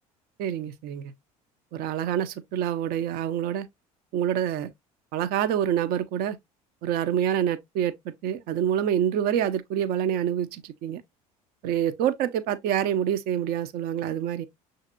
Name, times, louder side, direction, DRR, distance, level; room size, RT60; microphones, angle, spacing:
voice 1, 0.4-1.1 1.7-3.7 4.1-4.7 5.1-6.4 6.8-11.0 11.6-14.5, right 10 dB, 55° right, 0.7 m, -27 dB
6.4 x 2.7 x 2.5 m
hypercardioid pair, 65°, 19 cm